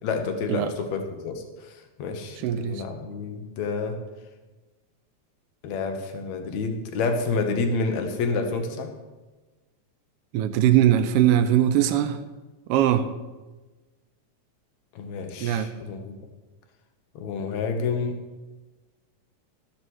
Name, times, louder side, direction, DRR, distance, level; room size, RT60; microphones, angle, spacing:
voice 1, 0.0-4.0 5.6-8.9 15.0-16.1 17.2-18.2, left 4 dB, 75° left, 5 dB, 2.4 m, -29 dB
voice 2, 2.4-2.8 10.3-12.2 12.7-13.1 15.4-15.7, right 11 dB, 85° right, 9 dB, 1.3 m, -21 dB
13.5 x 12.5 x 3.1 m, 1.2 s
omnidirectional pair, 3.3 m